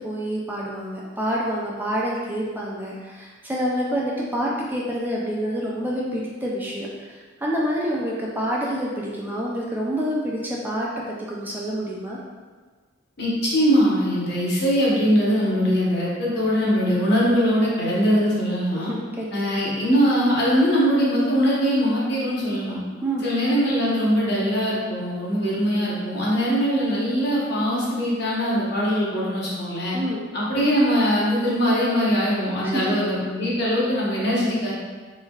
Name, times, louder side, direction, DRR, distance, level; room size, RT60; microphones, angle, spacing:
voice 1, 0.0-10.9 11.3-12.2 18.9-19.6 23.0-23.3 29.9-30.3 32.6-32.9, equal, 10° right, -4 dB, 0.3 m, -27 dB
voice 2, 13.2-18.9 19.3-22.8 23.2-30.0 30.3-34.7, equal, 60° left, -6 dB, 0.9 m, -21 dB
3.3 x 3.2 x 2.3 m, 1.4 s
head